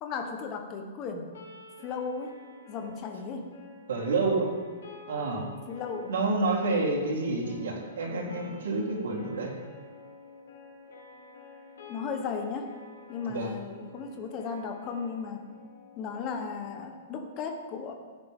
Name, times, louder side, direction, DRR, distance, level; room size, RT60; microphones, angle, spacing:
voice 1, 0.0-1.3 1.8-2.4 2.7-3.5 5.7-6.1 11.9-12.7 13.1-15.5 16.0-17.9, left 5 dB, 20° left, 4 dB, 1.1 m, -35 dB
sound 1, 1.3-17.4, left 3 dB, 90° left, 3.2 m, -50 dB
voice 2, 3.9-4.5 5.1-5.5 6.1-9.5 13.3-13.5, right 3 dB, 85° right, -3 dB, 3.6 m, -28 dB
16.0 x 9.4 x 3.7 m, 1.5 s
hypercardioid pair, 175°, 0 cm